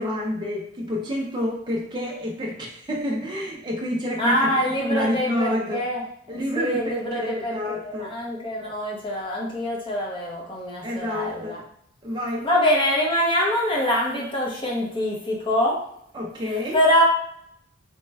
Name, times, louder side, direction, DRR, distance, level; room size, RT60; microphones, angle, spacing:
voice 1, 0.0-5.8 6.3-8.1 10.8-11.6 12.0-12.5 16.1-16.8, left 1 dB, 20° right, -2 dB, 0.4 m, -29 dB
voice 2, 4.2-6.0 6.3-11.6 12.4-15.8 16.7-17.0, equal, 25° left, -3 dB, 0.7 m, -24 dB
3.2 x 2.2 x 3.2 m, 0.71 s
head